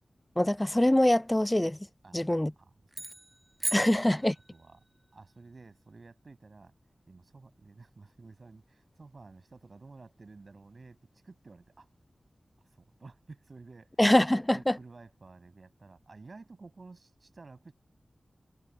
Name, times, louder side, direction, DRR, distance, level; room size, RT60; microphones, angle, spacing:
voice 1, 0.4-1.8 2.1-2.5 3.7-4.4 14.0-14.8, left 1 dB, 15° left, 0.3 m, -24 dB
voice 2, 2.0-2.7 3.0-3.1 4.5-4.8 5.1-6.7 7.1-11.0 11.2-11.9 12.8-13.9 14.5-17.7, right 3 dB, 55° right, 6.9 m, -52 dB
sound 1, 2.9-4.8, right 1 dB, 20° right, 1.1 m, -38 dB
wide cardioid pair, 85°, 0 cm